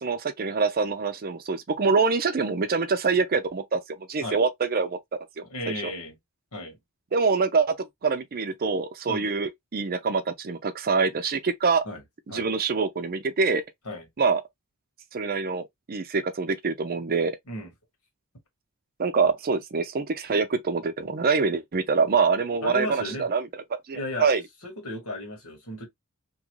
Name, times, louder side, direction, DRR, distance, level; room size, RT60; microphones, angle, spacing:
voice 1, 0.0-5.0 5.4-5.9 7.1-11.8 12.3-13.6 14.2-14.4 15.1-17.4 19.0-23.5 23.9-24.4, right 4 dB, 40° right, 0.5 m, -25 dB
voice 2, 5.5-6.2 6.5-6.8 9.1-9.3 11.8-12.0 12.3-12.5 13.8-14.1 17.5-17.7 22.6-23.3 23.9-24.3 24.6-25.9, left 1 dB, 80° left, 1.7 m, -34 dB
3.0 x 2.4 x 3.0 m
head